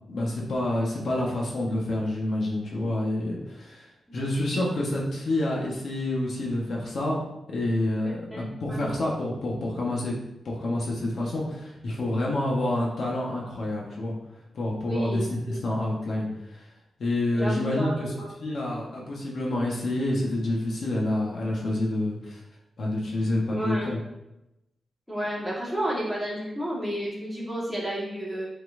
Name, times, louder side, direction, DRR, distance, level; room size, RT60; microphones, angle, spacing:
voice 1, 0.1-7.2 7.5-10.1 10.4-14.1 14.5-16.6 17.0-18.1 18.4-22.4 22.8-24.0, left 1 dB, 60° left, -3 dB, 1.4 m, -28 dB
voice 2, 8.0-8.4 8.7-8.9 14.9-15.2 17.3-18.3 23.5-23.9 25.1-28.5, equal, ahead, -6 dB, 1.8 m, -31 dB
8.2 x 4.2 x 2.7 m, 0.90 s
wide cardioid pair, 125°, 0 cm